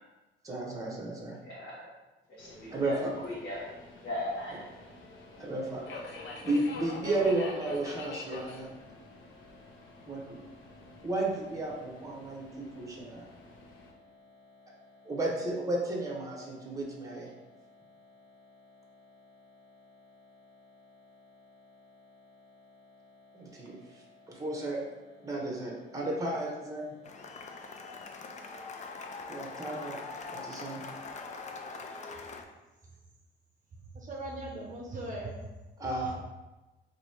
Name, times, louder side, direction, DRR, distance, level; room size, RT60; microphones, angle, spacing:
voice 1, 0.4-1.4 2.7-3.1 5.4-8.7 10.1-10.4 11.0-13.3 15.0-17.3 23.3-24.8 25.2-26.9 29.3-30.0 30.3-30.8 35.8-36.1, right 2 dB, 15° right, -1 dB, 0.9 m, -33 dB
voice 2, 1.4-1.9 2.3-3.0 3.2-3.6 4.0-5.5 6.3-6.5 8.5-11.1 12.2-12.6 13.1-15.1 16.6-16.8 17.3-24.4 27.3-29.6 30.2-31.2, left 1 dB, 60° left, -8 dB, 1.2 m, -47 dB
Subway metro underground, 2.4-13.9, left 3 dB, 75° left, 0.8 m, -47 dB
Cheering / Applause, 27.0-32.4, left 4 dB, 35° left, 0.4 m, -42 dB
voice 3, 33.9-35.4 35.8-36.1, right 1 dB, 40° right, -2 dB, 0.7 m, -39 dB
2.9 x 2.7 x 4.2 m, 1.1 s
cardioid pair, 90°, 20 cm